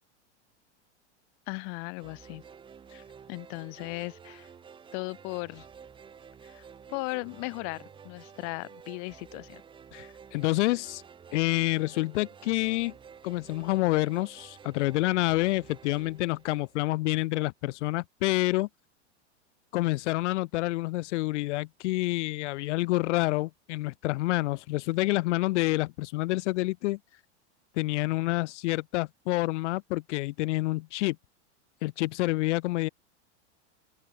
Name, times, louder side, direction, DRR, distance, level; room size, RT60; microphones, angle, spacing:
voice 1, 1.5-2.4 3.3-4.5 4.9-5.7 6.4-6.6 6.9-9.6, left 40 dB or more, 50° left, 1.3 m, -37 dB
sound 1, 2.0-17.2, right 7 dB, 15° right, 0.8 m, -51 dB
voice 2, 9.9-11.0 11.3-12.9 13.2-18.7 19.7-27.0 27.8-31.2 31.8-32.9, left 19 dB, 75° left, 0.6 m, -28 dB
open air
supercardioid pair, 135°, 36 cm